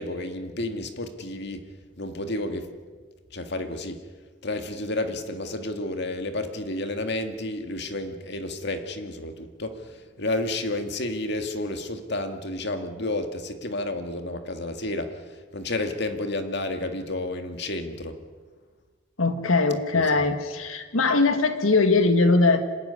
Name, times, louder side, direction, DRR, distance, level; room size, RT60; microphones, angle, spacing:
voice 1, 0.0-1.6 2.0-2.7 3.3-4.0 4.4-18.2 19.9-20.1, left 2 dB, 55° left, 6 dB, 2.1 m, -31 dB
voice 2, 19.2-22.6, left 3 dB, 85° left, 8 dB, 1.8 m, -21 dB
27.0 x 13.0 x 9.6 m, 1.5 s
head